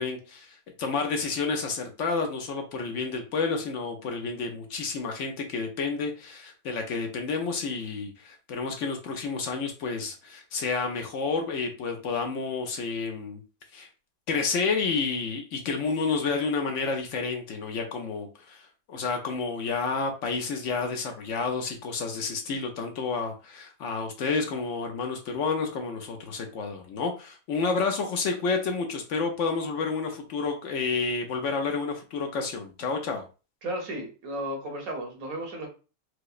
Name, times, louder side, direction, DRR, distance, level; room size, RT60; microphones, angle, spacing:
voice 1, 0.0-13.4 13.7-13.9 14.3-33.2, left 4 dB, 65° left, 4 dB, 0.9 m, -30 dB
voice 2, 33.6-35.7, right 1 dB, 80° right, 2 dB, 1.4 m, -34 dB
4.6 x 2.0 x 2.4 m, 0.33 s
omnidirectional pair, 1.5 m